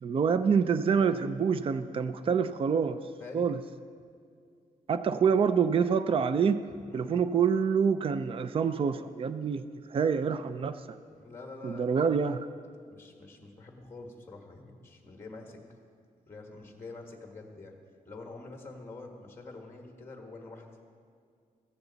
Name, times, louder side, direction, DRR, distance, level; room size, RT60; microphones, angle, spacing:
voice 1, 0.0-3.0 3.3-3.6 4.9-6.6 6.9-9.6 9.9-10.8 11.6-12.5, right 6 dB, 40° right, 11 dB, 0.4 m, -26 dB
voice 2, 3.2-3.5 6.9-7.2 11.1-11.9 12.9-15.6 16.3-17.8 18.1-20.7, left 3 dB, 15° left, 2 dB, 1.4 m, -46 dB
15.0 x 14.5 x 4.0 m, 2.3 s
wide cardioid pair, 160°, 15 cm